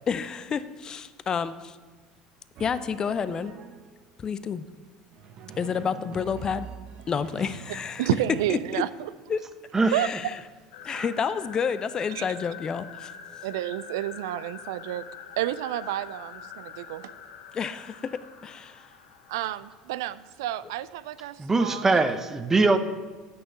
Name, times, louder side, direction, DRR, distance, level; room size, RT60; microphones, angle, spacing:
voice 1, 0.1-1.8 2.6-3.5 4.2-4.7 5.6-6.7 7.1-8.1 8.5-8.8 9.3-9.4 9.9-10.3 10.8-13.1 17.5-18.9, left 6 dB, 30° left, 14 dB, 0.5 m, -30 dB
Drum, 2.6-4.0 5.1-8.2, right 6 dB, 50° right, 1.0 m, -44 dB
voice 2, 8.0-9.1 9.9-10.1 12.2-12.3 13.4-15.0 15.4-17.1 19.3-22.0, right 14 dB, 70° right, 16 dB, 0.3 m, -30 dB
sound 1, 10.7-20.4, left 8 dB, 70° left, 0.9 m, -45 dB
voice 3, 21.4-22.8, right 3 dB, 20° right, 9 dB, 0.8 m, -22 dB
8.7 x 6.5 x 6.6 m, 1.4 s
hypercardioid pair, 70°, 2 cm